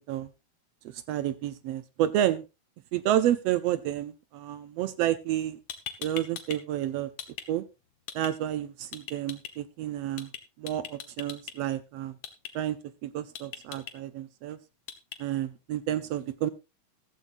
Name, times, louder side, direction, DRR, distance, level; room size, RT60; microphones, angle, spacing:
voice 1, 0.9-2.4 2.9-5.6 6.0-7.1 7.5-7.6 8.1-10.3 10.6-12.1 12.5-12.8 13.0-14.6 15.2-16.5, right 12 dB, 75° right, 14 dB, 1.6 m, -30 dB
sound 1, 5.4-5.5 5.7-6.6 6.9-7.5 8.1-8.3 8.9-9.5 10.2-10.4 10.7-11.5 12.2-12.5 13.4-13.9 14.9-15.2, left 9 dB, 60° left, 2.1 m, -39 dB
14.5 x 13.5 x 2.5 m, 0.26 s
omnidirectional pair, 3.4 m